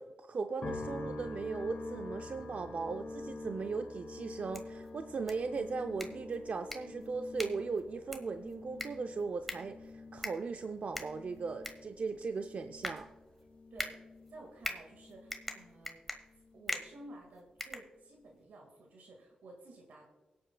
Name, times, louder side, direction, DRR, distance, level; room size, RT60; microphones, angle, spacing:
voice 1, 0.0-13.1, right 4 dB, 55° right, 7 dB, 0.5 m, -38 dB
sound 1, 0.6-15.9 16.1-17.0, left 2 dB, 55° left, 1.6 m, -47 dB
sound 2, 4.3-18.4, left 1 dB, 5° left, 1.4 m, -45 dB
voice 2, 14.3-16.0 16.5-20.0, right 2 dB, 80° right, 1 dB, 1.8 m, -53 dB
23.0 x 8.4 x 2.2 m, 1.2 s
cardioid pair, 50°, 3 cm